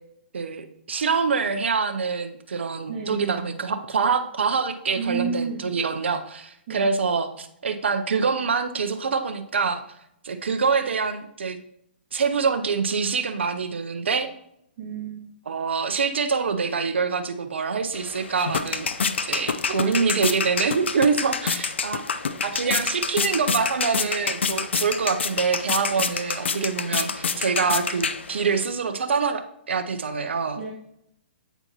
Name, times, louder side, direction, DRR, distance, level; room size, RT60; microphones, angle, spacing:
voice 1, 0.3-9.8 10.2-11.6 12.1-14.3 15.5-18.9 19.2-22.0 22.4-30.6, right 5 dB, 80° right, 7 dB, 0.6 m, -25 dB
voice 2, 2.9-3.5 5.0-5.7 6.7-6.9 14.8-15.2 19.7-20.0 30.6-30.7, right 5 dB, 40° right, -7 dB, 1.6 m, -31 dB
sound 1, 17.9-28.6, left 5 dB, 80° left, 0.5 m, -28 dB
7.8 x 4.4 x 2.8 m, 0.75 s
hypercardioid pair, 130°, 6 cm